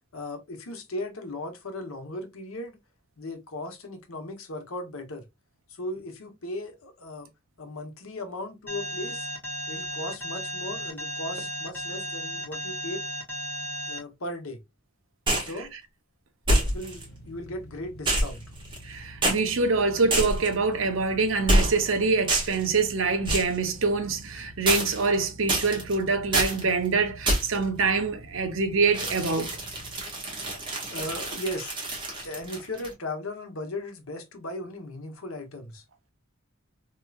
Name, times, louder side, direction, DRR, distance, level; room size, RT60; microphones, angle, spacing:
voice 1, 0.1-2.8 3.2-5.3 5.7-7.3 7.6-9.3 9.7-13.0 13.6-14.6 15.3-15.7 16.6-18.4 30.9-31.8 32.1-35.8, left 1 dB, 80° left, 0.9 m, -37 dB
Alarm, 8.7-14.0, equal, 10° left, 1.8 m, -34 dB
sound 1, 15.3-15.6 16.5-17.0 18.1-18.9 19.2-19.4 20.1-20.5 21.5-21.9 22.3-22.7 23.3-23.6 24.7-25.1 25.5-25.9 26.3-26.6 27.3-27.6 28.9-32.9, right 1 dB, 25° right, 1.4 m, -26 dB
sound 2, 16.7-30.0, equal, 50° left, 0.7 m, -47 dB
voice 2, 18.8-29.5, right 4 dB, 65° right, 0.8 m, -25 dB
3.6 x 3.0 x 2.3 m
head